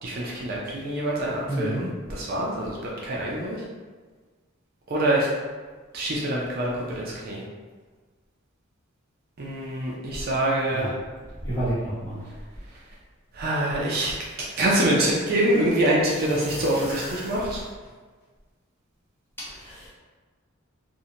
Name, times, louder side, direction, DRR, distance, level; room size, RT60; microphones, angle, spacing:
voice 1, 0.0-2.8 3.0-3.6 4.9-5.3 5.9-7.4 9.4-10.9 13.3-14.1 14.4-17.6, right 1 dB, 45° right, -4 dB, 0.4 m, -25 dB
voice 2, 1.5-1.9 10.7-10.9 11.4-12.2 19.5-19.9, right 1 dB, 10° left, -11 dB, 0.9 m, -29 dB
sound 1, 13.5-13.6 14.0-15.2 16.0-17.9, equal, 65° left, 1.3 m, -40 dB
2.6 x 2.1 x 2.7 m, 1.4 s
head